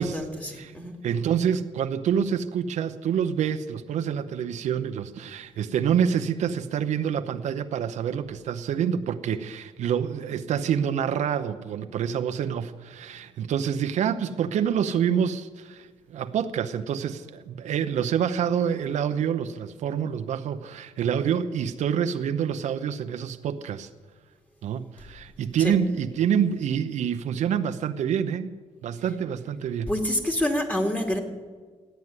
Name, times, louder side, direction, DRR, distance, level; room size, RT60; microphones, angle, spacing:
voice 1, 0.0-0.9 25.6-25.7 29.9-31.2, left 1 dB, 10° left, 2 dB, 2.6 m, -27 dB
voice 2, 1.0-23.9 24.6-28.5 28.8-29.9, right 8 dB, 85° right, 8 dB, 0.8 m, -27 dB
15.0 x 9.4 x 9.6 m, 1.5 s
cardioid pair, 90°, 12 cm